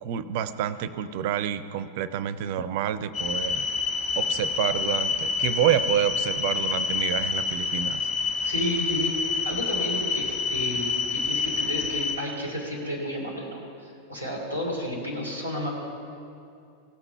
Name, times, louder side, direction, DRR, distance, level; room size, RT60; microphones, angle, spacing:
voice 1, 0.0-3.7 4.2-8.1, right 10 dB, 50° right, 15 dB, 0.4 m, -28 dB
sound 1, 3.1-12.1, left 5 dB, 45° left, 1.3 m, -27 dB
voice 2, 8.4-15.7, equal, 85° left, -3 dB, 2.8 m, -32 dB
17.5 x 5.9 x 5.7 m, 2.5 s
figure-of-eight pair, 90°, 0 cm